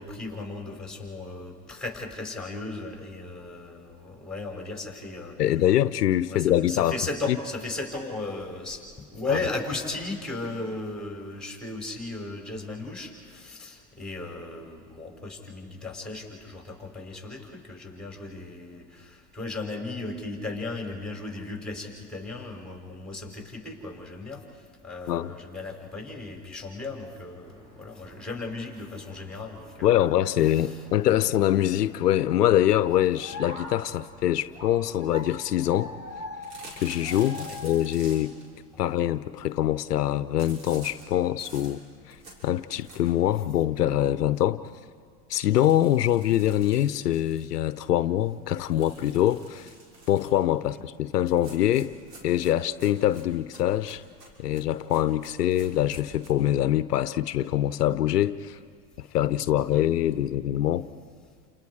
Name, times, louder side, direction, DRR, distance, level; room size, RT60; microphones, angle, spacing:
voice 1, 0.0-5.6 6.3-24.4 24.8-30.1 30.5-30.8 31.2-31.3 37.3-37.6 38.7-38.9 50.7-50.8 59.7-59.9, left 3 dB, ahead, 5.4 m, -36 dB
voice 2, 5.4-7.0 7.3-7.4 25.1-25.3 29.8-35.9 36.8-38.4 38.8-41.8 42.1-42.2 42.4-44.6 45.3-49.7 50.1-51.9 52.2-54.0 54.4-58.6 59.0-60.9, left 12 dB, 80° left, 0.8 m, -24 dB
sound 1, 27.4-38.3, left 2 dB, 35° right, 7.5 m, -44 dB
sound 2, 36.4-38.5 40.4-43.3 43.8-43.9 44.2-44.3 44.6-44.7 45.3-47.8 48.6-50.4 51.3-56.3, right 2 dB, 85° right, 6.5 m, -48 dB
29.5 x 28.5 x 4.9 m
hypercardioid pair, 100°, 47 cm